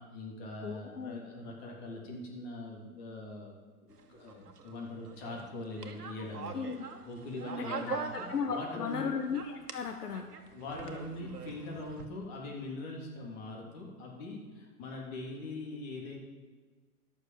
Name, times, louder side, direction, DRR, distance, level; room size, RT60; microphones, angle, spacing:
voice 1, 0.0-3.5 3.8-6.5 7.1-9.1 10.5-16.2, left 2 dB, 45° left, -1 dB, 3.5 m, -42 dB
voice 2, 0.6-1.2 6.5-6.8 7.6-10.3, left 6 dB, 85° left, 5 dB, 1.1 m, -36 dB
sound 1, 3.9-8.9 9.2-12.1, right 5 dB, 90° right, 1.3 m, -43 dB
12.0 x 6.5 x 7.6 m, 1.4 s
hypercardioid pair, 120°, 46 cm